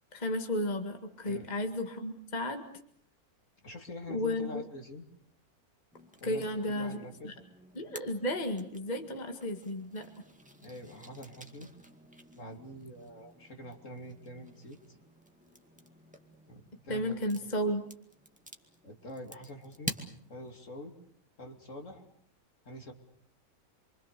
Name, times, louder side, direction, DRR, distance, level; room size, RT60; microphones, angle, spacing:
voice 1, 0.1-2.6 4.1-4.6 6.2-7.3 7.8-10.1 16.9-17.8, left 1 dB, 30° left, 5 dB, 2.0 m, -33 dB
voice 2, 3.6-5.0 6.2-7.3 10.6-11.7 12.3-15.0 16.5-17.3 18.8-20.0 20.3-20.9 21.4-22.1 22.6-22.9, equal, 55° left, 3 dB, 3.3 m, -45 dB
sound 1, 5.9-20.6, equal, 5° right, 2.2 m, -49 dB
27.0 x 25.0 x 6.8 m, 0.63 s
omnidirectional pair, 1.6 m